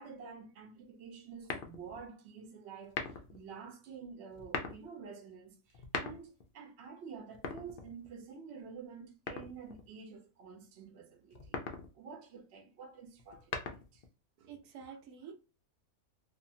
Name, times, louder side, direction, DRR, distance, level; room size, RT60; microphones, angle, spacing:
voice 1, 0.0-11.6 11.9-14.0 14.9-15.0, right 6 dB, 55° right, 0.9 m, -49 dB
sound 1, 1.4-2.1 2.8-3.4 4.3-4.8 5.7-6.5 7.3-8.2 9.3-9.9 11.3-11.9 13.2-14.1, left 5 dB, 90° left, 0.4 m, -40 dB
voice 2, 14.4-15.3, right 7 dB, 80° right, 1.1 m, -49 dB
2.7 x 2.6 x 2.6 m
omnidirectional pair, 1.6 m